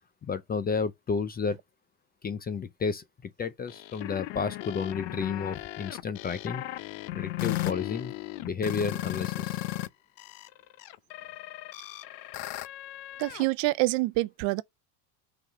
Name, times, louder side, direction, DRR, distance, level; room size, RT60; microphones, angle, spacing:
voice 1, 0.2-1.6 2.2-6.6 7.1-8.1 8.4-9.6, left 5 dB, 20° left, 0.4 m, -32 dB
sound 1, 3.7-9.9 10.2-13.5, left 17 dB, 55° left, 0.7 m, -36 dB
voice 2, 13.2-14.6, right 21 dB, 60° right, 0.7 m, -26 dB
5.8 x 4.0 x 5.8 m
supercardioid pair, 115°, 49 cm